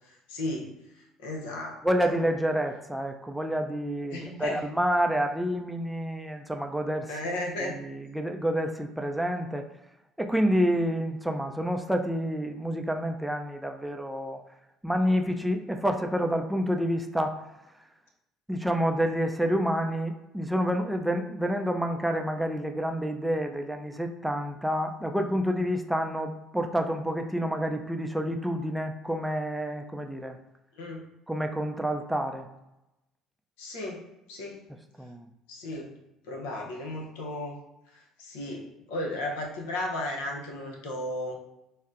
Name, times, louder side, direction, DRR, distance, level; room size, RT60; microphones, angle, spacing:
voice 1, 0.3-0.7 1.2-1.8 2.0-2.2 4.1-4.6 7.1-7.7 30.8-31.1 33.6-34.0 34.3-34.6 35.5-35.9 36.3-37.6 38.2-38.6 38.9-41.4, left 1 dB, 80° left, 0 dB, 0.7 m, -34 dB
voice 2, 1.8-7.2 7.6-9.7 10.2-14.4 14.8-17.4 18.5-30.4 31.3-32.5 35.0-35.3, equal, 5° right, 4 dB, 0.4 m, -28 dB
4.1 x 2.0 x 2.5 m, 0.91 s
hypercardioid pair, 65°, 0 cm